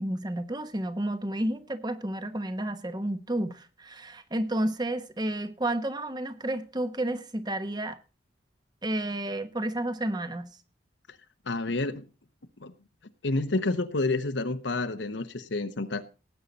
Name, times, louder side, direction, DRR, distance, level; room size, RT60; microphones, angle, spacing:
voice 1, 0.0-8.0 8.8-10.5, right 1 dB, 25° right, 1.2 m, -31 dB
voice 2, 11.5-12.1 12.6-12.7 13.2-16.0, left 2 dB, 75° left, 1.0 m, -29 dB
18.5 x 8.3 x 4.1 m
head